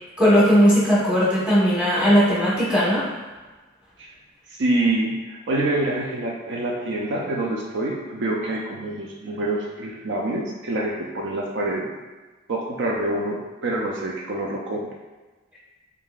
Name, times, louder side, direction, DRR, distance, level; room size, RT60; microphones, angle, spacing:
voice 1, 0.2-3.0, equal, 5° right, -9 dB, 1.1 m, -18 dB
voice 2, 4.6-11.9 12.5-14.9, right 2 dB, 65° right, -1 dB, 0.5 m, -26 dB
3.6 x 3.6 x 2.4 m, 1.2 s
head